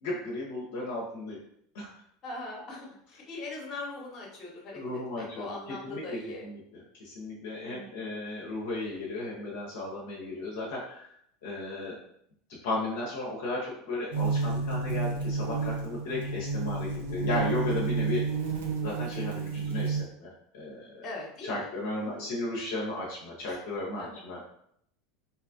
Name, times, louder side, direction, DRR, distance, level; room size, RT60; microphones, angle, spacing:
voice 1, 0.0-1.4 1.7-1.9 4.7-11.1 11.4-11.9 12.6-18.2 18.8-21.1 21.4-24.5, left 2 dB, 60° left, -4 dB, 0.7 m, -35 dB
voice 2, 2.2-6.5 7.6-8.1 21.0-21.7 22.0-22.3 23.5-23.6 24.0-24.2, left 2 dB, 35° left, -2 dB, 1.0 m, -41 dB
sound 1, 14.1-20.0, right 4 dB, 65° right, 0.6 m, -30 dB
3.2 x 2.7 x 2.5 m, 0.70 s
figure-of-eight pair, 75°, 0 cm